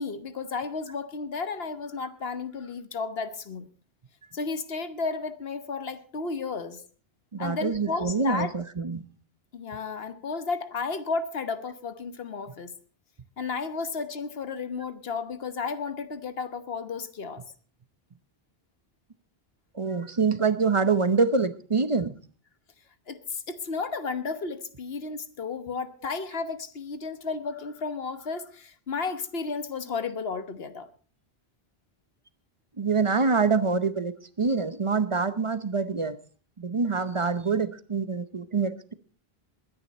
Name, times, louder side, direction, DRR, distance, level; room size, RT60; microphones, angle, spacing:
voice 1, 0.0-3.7 4.3-6.8 7.4-8.5 9.5-12.7 13.4-17.4 23.1-30.9, left 4 dB, 75° left, 1.4 m, -33 dB
voice 2, 7.3-9.0 19.7-22.1 32.8-36.2 36.6-38.9, right 4 dB, 35° right, 0.8 m, -25 dB
21.0 x 10.0 x 4.2 m
omnidirectional pair, 1.0 m